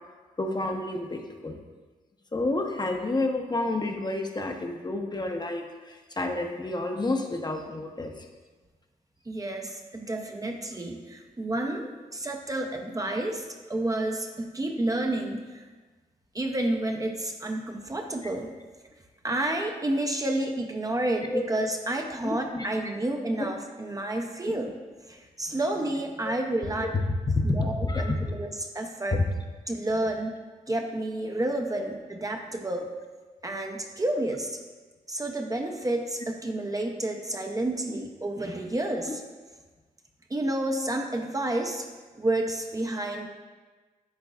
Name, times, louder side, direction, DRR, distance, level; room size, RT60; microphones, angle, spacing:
voice 1, 0.4-1.6 2.3-8.3 21.3-21.4 22.2-22.7 23.4-23.5 24.4-24.5 27.3-28.3 31.7-31.8, left 2 dB, 25° left, 3 dB, 0.8 m, -29 dB
voice 2, 9.3-15.6 16.3-18.5 19.2-24.7 25.0-26.9 27.4-29.2 29.7-30.4 30.7-32.9 33.4-34.6 35.1-39.2 40.3-41.9 42.2-43.3, right 1 dB, 20° right, 3 dB, 0.6 m, -30 dB
10.5 x 3.9 x 2.3 m, 1.3 s
supercardioid pair, 55°, 16 cm